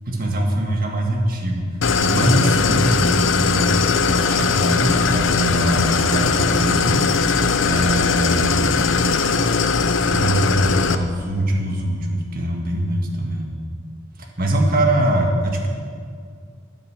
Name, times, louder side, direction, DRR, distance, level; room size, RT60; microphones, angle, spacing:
voice 1, 0.1-1.6 2.0-8.9 10.1-13.5 14.2-15.7, right 1 dB, 50° right, 1 dB, 1.8 m, -23 dB
Idling, 1.8-11.0, left 4 dB, 85° left, 0.7 m, -19 dB
12.0 x 10.5 x 7.8 m, 2.1 s
head